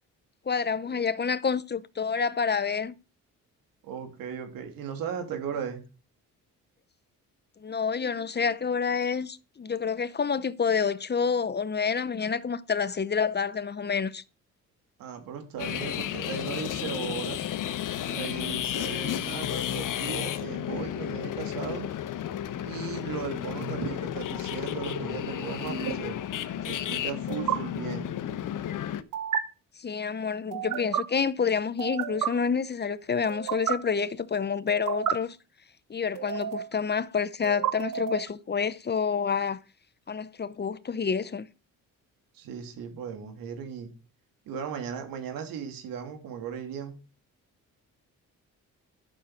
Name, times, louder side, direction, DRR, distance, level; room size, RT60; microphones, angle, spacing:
voice 1, 0.5-2.9 7.6-14.2 29.8-35.4 35.9-39.6 40.1-41.5, left 6 dB, 30° left, 0.7 m, -28 dB
voice 2, 3.8-5.8 15.0-17.4 18.1-21.9 22.7-26.2 26.6-28.1 42.3-43.9 44.5-47.0, right 7 dB, 90° right, 2.9 m, -37 dB
sound 1, 15.6-29.0, left 11 dB, 70° left, 1.1 m, -32 dB
sound 2, 23.6-23.9 25.7-25.9 27.3-27.6 29.1-29.4 30.5-31.0 31.8-32.3 33.3-33.7 34.7-35.1 36.1-36.7 37.4-38.3, right 9 dB, 65° right, 1.7 m, -30 dB
11.5 x 6.7 x 5.0 m
cardioid pair, 80°, 33 cm